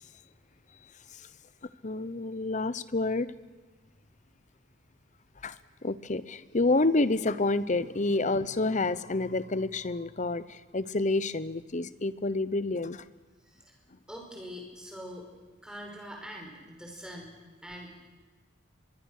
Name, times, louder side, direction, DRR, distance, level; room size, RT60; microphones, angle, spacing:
voice 1, 1.8-3.3 5.4-5.6 5.8-13.0, left 2 dB, 35° left, 16 dB, 0.8 m, -28 dB
voice 2, 13.4-13.7 14.1-15.3 15.6-18.1, equal, 5° right, 0 dB, 5.1 m, -44 dB
24.0 x 22.0 x 6.5 m, 1.2 s
head